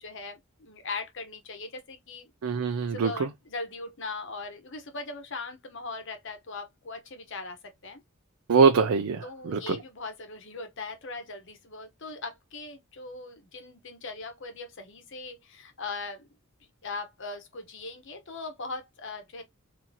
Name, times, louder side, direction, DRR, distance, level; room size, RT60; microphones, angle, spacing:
voice 1, 0.0-2.3 2.9-7.6 7.8-8.0 9.2-16.3 16.8-19.4, left 3 dB, 60° left, 1.0 m, -39 dB
voice 2, 2.4-3.3 8.5-9.8, right 5 dB, 80° right, 0.5 m, -23 dB
4.2 x 2.7 x 2.8 m
head